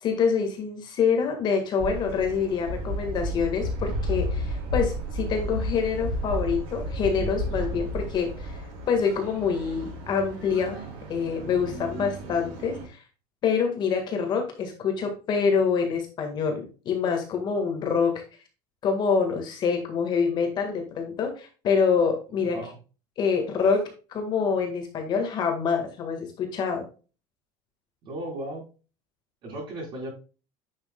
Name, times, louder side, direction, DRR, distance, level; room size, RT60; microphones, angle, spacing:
voice 1, 0.0-8.6 8.9-10.8 11.1-13.0 13.4-18.2 18.8-22.6 23.2-23.8 24.1-26.8, left 6 dB, 35° left, 4 dB, 1.7 m, -26 dB
sound 1, 1.8-12.9, equal, 65° right, 4.0 m, -32 dB
voice 2, 22.4-22.8 28.0-28.6 29.4-30.1, right 1 dB, 40° right, 0 dB, 4.4 m, -35 dB
9.5 x 6.2 x 2.3 m, 0.34 s
cardioid pair, 175°, 13 cm